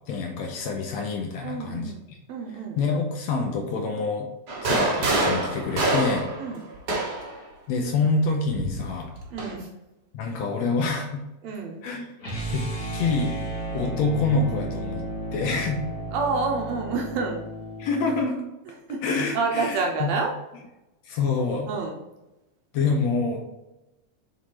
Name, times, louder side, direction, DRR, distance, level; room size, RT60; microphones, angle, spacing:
voice 1, 0.1-2.2 2.5-4.3 4.6-6.3 7.7-9.1 10.1-11.2 11.8-12.1 12.5-12.7 12.9-13.4 13.7-15.0 15.3-15.8 17.8-18.4 19.0-20.1 21.1-21.7 22.7-23.5, left 4 dB, 75° left, 2 dB, 1.7 m, -26 dB
voice 2, 1.4-2.0 2.3-2.9 6.4-6.6 9.3-9.7 11.4-11.8 16.1-17.4 18.9-19.0 19.3-20.3 21.7-22.0, right 4 dB, 75° right, 1 dB, 1.7 m, -28 dB
sound 1, 4.5-7.4 8.5-9.6, right 2 dB, 55° right, 1.1 m, -26 dB
sound 2, 12.2-18.3, right 2 dB, 40° left, 1.4 m, -33 dB
7.3 x 4.2 x 3.0 m, 0.98 s
omnidirectional pair, 3.5 m